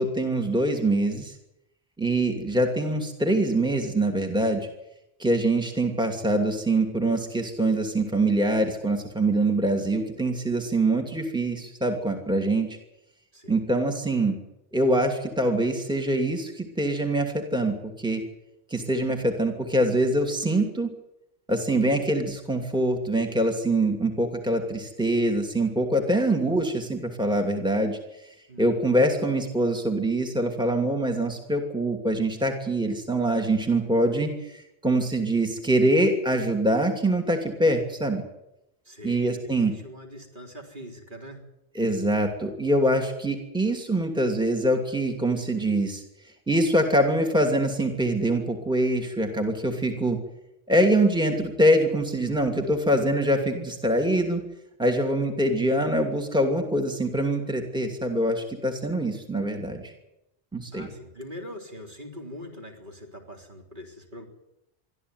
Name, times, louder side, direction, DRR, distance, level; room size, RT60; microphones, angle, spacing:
voice 1, 0.0-1.3 2.0-4.7 5.2-12.7 13.5-14.4 14.7-18.2 18.7-20.9 21.5-28.0 28.6-38.2 39.0-39.7 41.7-46.0 46.5-50.2 50.7-54.4 54.8-59.9 60.5-60.9, right 1 dB, 5° right, 3 dB, 2.6 m, -24 dB
voice 2, 28.5-28.9 38.9-41.4 60.7-64.3, left 1 dB, 50° right, 1 dB, 4.0 m, -42 dB
23.5 x 14.0 x 9.5 m, 0.88 s
omnidirectional pair, 1.1 m